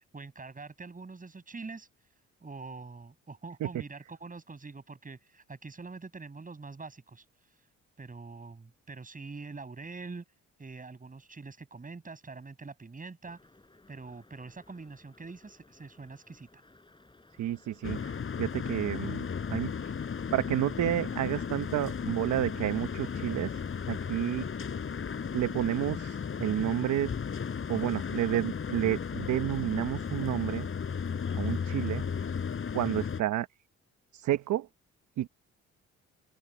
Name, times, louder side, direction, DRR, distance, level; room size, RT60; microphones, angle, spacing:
voice 1, 0.1-1.9 2.4-7.7 8.0-10.2 10.6-13.4 13.9-16.6, right 4 dB, 25° right, 7.7 m, -44 dB
sound 1, 13.3-29.9, left 2 dB, 15° left, 7.4 m, -59 dB
voice 2, 17.4-19.7 20.3-23.6 23.9-24.5 25.3-27.1 27.7-30.7 31.3-32.1 32.7-33.5 34.1-34.7 35.2-35.3, right 12 dB, 70° right, 1.1 m, -30 dB
sound 2, 17.8-33.2, left 6 dB, 45° left, 4.2 m, -35 dB
open air
cardioid pair, 90°, 30 cm